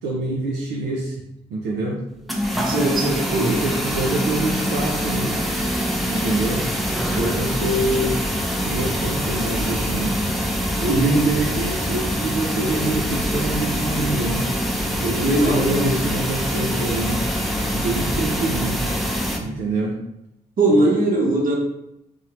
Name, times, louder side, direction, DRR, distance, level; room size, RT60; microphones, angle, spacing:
voice 1, 0.0-1.2 1.5-2.3 3.5-5.5 6.1-6.6 7.1-8.2 8.6-10.2 10.8-14.5 15.0-17.2 17.7-18.9 19.4-19.9 20.8-20.9, right 2 dB, 85° right, -2 dB, 0.4 m, -26 dB
sound 1, 2.3-19.4, equal, ahead, 0.5 m, -24 dB
voice 2, 2.6-3.6 10.9-11.2 15.2-15.9 20.6-21.6, right 2 dB, 55° right, 0 dB, 0.8 m, -19 dB
2.7 x 2.0 x 2.9 m, 0.83 s
supercardioid pair, 45°, 17 cm